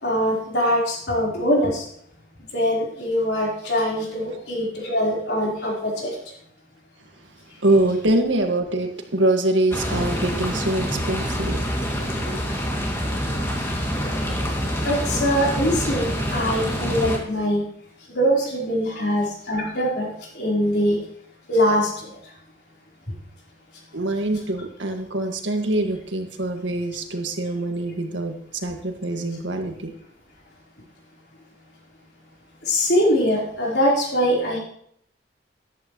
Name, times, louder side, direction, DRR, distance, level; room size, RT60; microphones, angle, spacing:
voice 1, 0.0-1.9 2.5-6.2 14.8-17.6 18.1-21.0 21.5-22.2 32.6-34.6, equal, 60° left, -3 dB, 4.2 m, -22 dB
voice 2, 7.6-11.6 12.2-12.4 23.9-28.4 28.6-29.9, right 1 dB, 80° right, 4 dB, 1.9 m, -24 dB
sound 1, 9.7-17.2, equal, 15° left, 2.4 m, -26 dB
14.0 x 11.5 x 3.1 m, 0.67 s
head